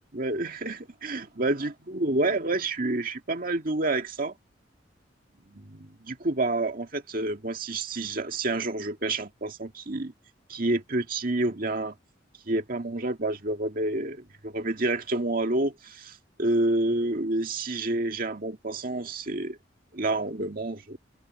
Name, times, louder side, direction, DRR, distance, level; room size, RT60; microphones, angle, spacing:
voice 1, 0.1-4.3 5.5-10.1 10.5-11.9 12.5-19.6 19.9-21.0, right 2 dB, 50° right, 2.0 m, -29 dB
head